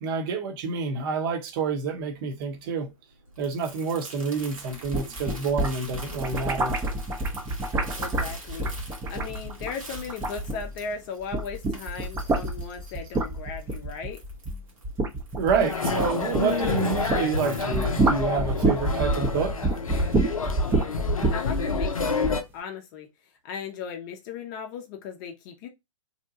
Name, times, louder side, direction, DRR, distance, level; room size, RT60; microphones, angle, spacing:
voice 1, 0.0-2.9 3.4-6.8 15.4-19.8, right 5 dB, 40° right, 0.8 m, -28 dB
Crumpling crinkling, 1.7-18.1, right 2 dB, 85° right, 1.3 m, -47 dB
sound 1, 4.7-10.9 11.2-17.3 17.6-22.4, right 2 dB, 15° right, 0.5 m, -27 dB
voice 2, 8.0-14.2 21.3-23.1 23.4-25.7, left 6 dB, 35° left, 0.6 m, -37 dB
sound 2, 15.6-22.4, left 4 dB, 90° left, 0.5 m, -29 dB
2.7 x 2.2 x 2.6 m
figure-of-eight pair, 115°, 17 cm